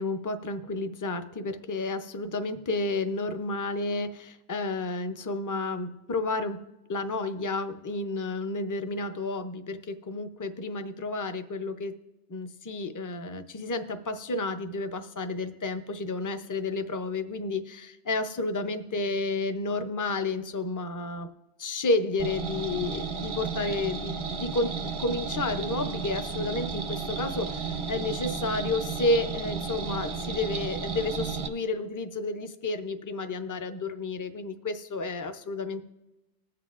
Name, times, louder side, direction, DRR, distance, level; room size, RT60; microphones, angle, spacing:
voice 1, 0.0-6.6 6.9-11.9 12.3-21.3 21.6-24.7 25.0-35.8, left 2 dB, 30° left, 8 dB, 0.4 m, -31 dB
sound 1, 22.2-31.5, right 5 dB, 40° right, 0.4 m, -33 dB
20.5 x 7.6 x 2.4 m, 0.99 s
omnidirectional pair, 1.1 m